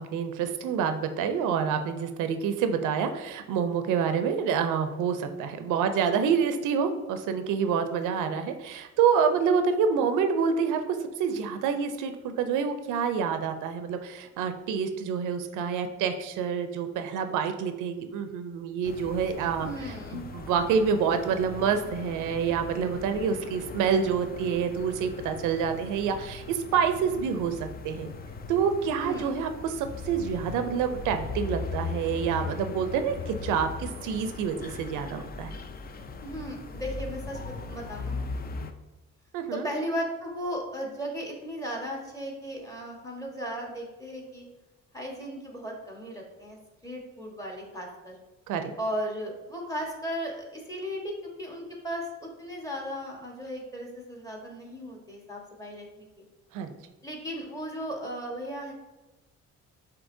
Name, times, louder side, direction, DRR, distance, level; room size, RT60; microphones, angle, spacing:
voice 1, 0.0-10.8 11.2-19.7 20.1-28.1 28.5-35.6 39.3-39.7 48.5-48.7 56.5-56.7, right 6 dB, 90° right, 8 dB, 0.5 m, -27 dB
sound 1, 18.8-38.7, left 4 dB, 30° left, 0.4 m, -39 dB
voice 2, 19.6-20.2 28.9-29.3 36.2-38.2 39.5-44.5 44.9-46.6 46.8-48.1 48.8-56.2 57.0-58.7, equal, 10° left, -1 dB, 1.3 m, -36 dB
7.1 x 2.7 x 2.6 m, 1.1 s
cardioid pair, 90°, 30 cm